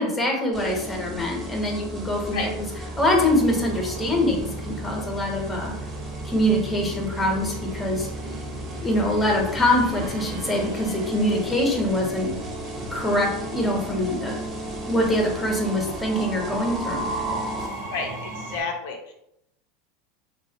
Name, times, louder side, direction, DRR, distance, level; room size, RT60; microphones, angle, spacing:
voice 1, 0.0-2.7 3.0-5.7 6.2-8.1 8.8-12.3 12.9-14.4 14.8-17.1, left 1 dB, 10° left, 0 dB, 0.8 m, -24 dB
sound 1, 0.5-17.7, right 1 dB, 25° right, 0.6 m, -35 dB
Train, 1.8-18.6, right 1 dB, 70° right, 0.8 m, -37 dB
voice 2, 17.9-19.1, left 4 dB, 75° left, 2 dB, 0.4 m, -31 dB
2.7 x 2.2 x 2.8 m, 0.78 s
supercardioid pair, 105°, 0 cm